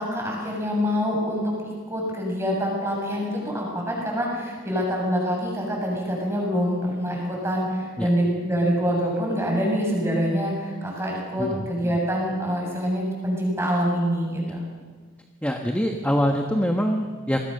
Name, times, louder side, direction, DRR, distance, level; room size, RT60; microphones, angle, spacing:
voice 1, 0.0-1.5 1.9-14.6, equal, 10° right, -2 dB, 7.3 m, -25 dB
voice 2, 15.4-17.4, equal, 5° left, 3 dB, 1.2 m, -24 dB
27.5 x 20.5 x 6.7 m, 1.5 s
head